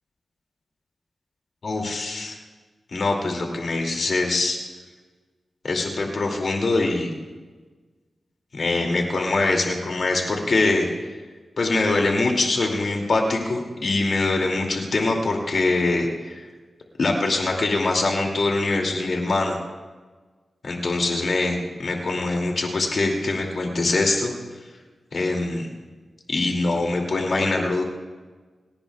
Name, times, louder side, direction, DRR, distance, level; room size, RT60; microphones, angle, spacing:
voice 1, 1.6-2.4 2.9-4.6 5.6-7.1 8.5-10.9 11.6-16.4 17.0-19.6 20.7-24.3 25.1-25.7 26.3-27.8, left 2 dB, 55° left, 1 dB, 2.5 m, -23 dB
28.5 x 18.0 x 2.4 m, 1.4 s
wide cardioid pair, 125°, 0 cm